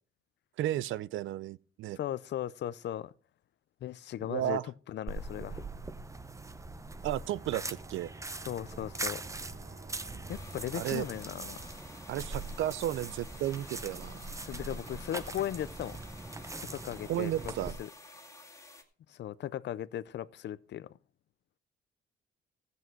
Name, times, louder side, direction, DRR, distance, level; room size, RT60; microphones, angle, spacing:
voice 1, 0.6-2.0 4.2-4.7 7.0-8.1 10.7-11.1 12.1-14.2 17.1-17.8, right 13 dB, 75° right, 0.5 m, -33 dB
voice 2, 2.0-3.1 3.8-4.6 4.9-5.6 8.5-9.2 10.3-11.7 14.4-16.0 16.6-17.5 17.8-17.9 19.1-20.9, left 11 dB, 65° left, 0.6 m, -37 dB
sound 1, 5.1-17.7, right 2 dB, 15° right, 0.8 m, -42 dB
Bowed string instrument, 7.0-12.0, right 4 dB, 55° right, 1.7 m, -54 dB
sound 2, 10.3-18.8, left 2 dB, 15° left, 2.1 m, -52 dB
13.5 x 8.2 x 4.6 m
cardioid pair, 90°, 20 cm